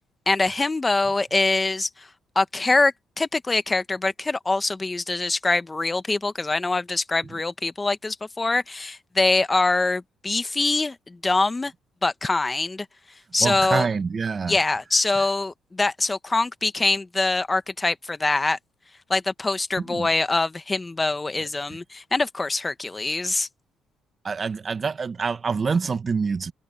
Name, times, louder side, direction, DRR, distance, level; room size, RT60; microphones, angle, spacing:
voice 1, 0.3-2.1 2.3-11.7 12.0-12.9 13.3-13.9 14.5-18.6 19.1-23.5, left 3 dB, 20° left, 1.2 m, -24 dB
voice 2, 13.4-14.6 19.9-20.1 24.2-26.5, right 5 dB, 40° right, 1.4 m, -26 dB
cardioid pair, 90°, 0 cm